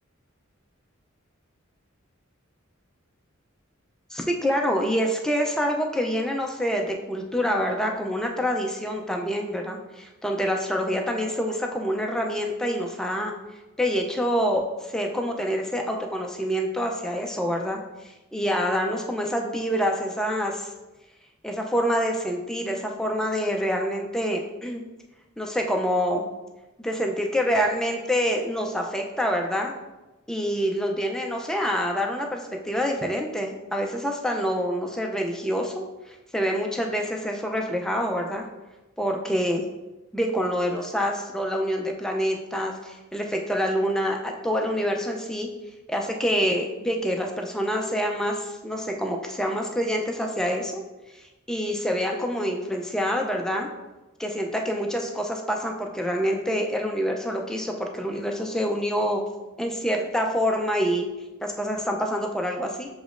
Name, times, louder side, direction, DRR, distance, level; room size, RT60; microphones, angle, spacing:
voice 1, 4.1-13.3 13.8-17.8 18.3-20.7 21.4-24.8 25.4-26.3 26.8-29.7 30.3-38.4 39.0-39.6 40.1-45.5 45.9-50.8 51.5-53.7 54.2-59.2 59.6-61.1 61.4-62.9, equal, 5° left, 1 dB, 0.4 m, -26 dB
6.9 x 3.0 x 2.5 m, 1.1 s
head